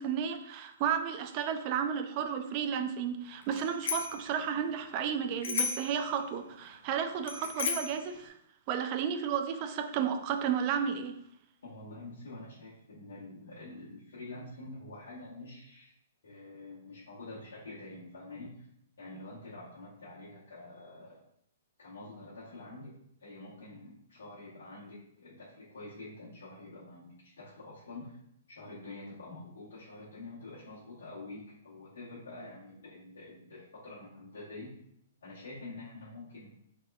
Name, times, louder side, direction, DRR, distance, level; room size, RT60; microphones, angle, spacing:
voice 1, 0.0-8.3 8.7-11.2, right 8 dB, 40° right, 8 dB, 0.3 m, -32 dB
Bicycle bell, 3.5-4.2 5.4-6.0 7.2-8.0, left 6 dB, 60° left, 0.5 m, -34 dB
voice 2, 11.6-15.9 16.2-18.7 19.0-21.2 21.8-22.9 23.2-28.2 28.5-34.8 35.2-36.6, left 2 dB, 75° left, -10 dB, 1.1 m, -47 dB
3.5 x 3.2 x 2.3 m, 0.75 s
hypercardioid pair, 135°, 0 cm